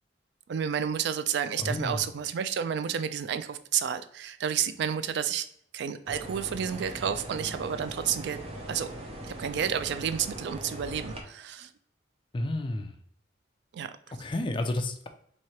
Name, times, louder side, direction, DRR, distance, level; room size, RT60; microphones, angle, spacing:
voice 1, 0.5-5.5 5.7-8.4 8.7-8.9 9.3-11.7 13.7-13.9, right 8 dB, 65° right, 11 dB, 0.3 m, -30 dB
voice 2, 1.6-2.0 12.3-12.9 14.2-15.1, left 1 dB, 25° left, 5 dB, 0.4 m, -31 dB
sound 1, 6.0-11.2, right 1 dB, 35° right, 0.6 m, -40 dB
3.1 x 2.8 x 4.3 m, 0.65 s
head